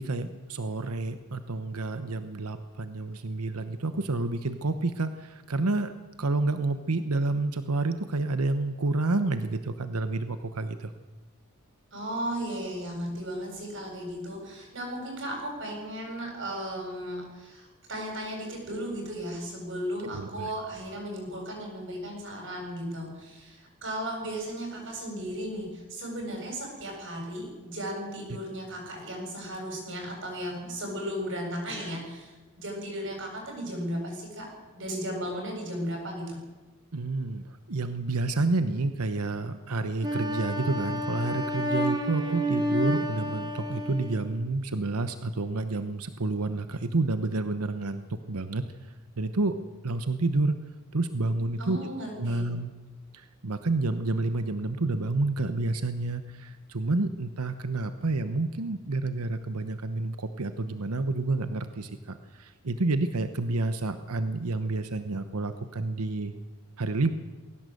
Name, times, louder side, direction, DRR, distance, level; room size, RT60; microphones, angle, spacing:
voice 1, 0.0-10.9 20.1-20.5 36.9-48.6 49.2-49.6 49.8-50.6 50.9-51.8 52.1-52.7 53.1-66.3 66.8-67.1, right 2 dB, 85° right, 10 dB, 1.0 m, -29 dB
voice 2, 11.9-34.5 34.7-36.4 51.6-52.5, equal, 55° right, 1 dB, 7.7 m, -35 dB
Wind instrument woodwind instrument, 40.0-44.3, equal, 20° right, 3.0 m, -30 dB
21.0 x 17.5 x 7.9 m, 1.2 s
head